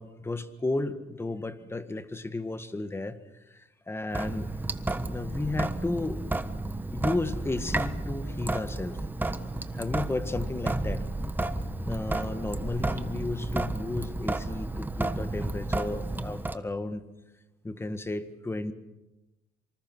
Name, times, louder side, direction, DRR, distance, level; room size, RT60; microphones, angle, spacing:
voice 1, 0.0-3.2 3.5-4.5 5.1-6.2 6.9-9.0 9.7-11.0 11.9-17.0 17.6-18.7, left 2 dB, 15° left, 10 dB, 1.8 m, -33 dB
Sink (filling or washing) / Drip, 4.1-16.6, right 2 dB, 10° right, 1.3 m, -32 dB
26.0 x 25.5 x 6.3 m, 1.0 s
cardioid pair, 110°, 17 cm